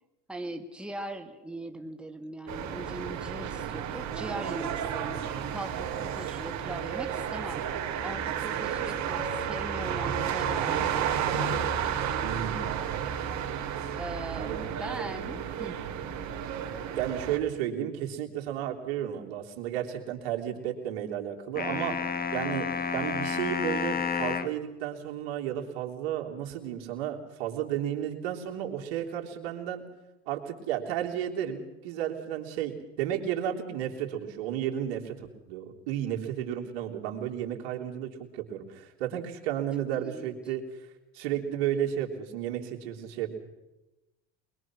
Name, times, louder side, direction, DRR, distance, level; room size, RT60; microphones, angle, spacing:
voice 1, 0.3-5.2 5.5-7.6 8.0-11.7 13.9-15.8 40.0-40.4, right 1 dB, 5° right, 5 dB, 2.1 m, -40 dB
sound 1, 2.5-17.4, right 8 dB, 55° right, 3.3 m, -32 dB
voice 2, 12.2-12.7 14.3-14.6 16.9-22.0 22.3-22.7 22.9-29.8 30.3-40.9 41.1-43.4, right 10 dB, 75° right, 1 dB, 3.4 m, -33 dB
sound 2, 21.6-24.6, left 5 dB, 25° left, 1.8 m, -30 dB
23.5 x 22.0 x 6.2 m, 1.0 s
supercardioid pair, 100°, 33 cm